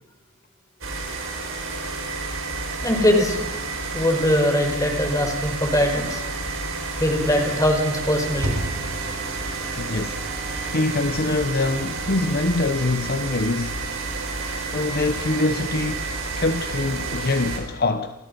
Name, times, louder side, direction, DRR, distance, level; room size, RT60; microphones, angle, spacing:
sound 1, 0.8-17.6, right 3 dB, 65° right, 5.9 m, -30 dB
voice 1, 2.8-3.4 3.9-6.2 7.0-8.5, left 1 dB, 15° left, 4.5 m, -21 dB
Sliding door / Slam, 5.0-12.0, right 1 dB, 85° right, 5.5 m, -37 dB
voice 2, 9.8-10.3 10.7-13.8 14.7-16.1 16.4-18.1, left 2 dB, 45° left, 0.9 m, -24 dB
30.0 x 25.0 x 5.4 m
head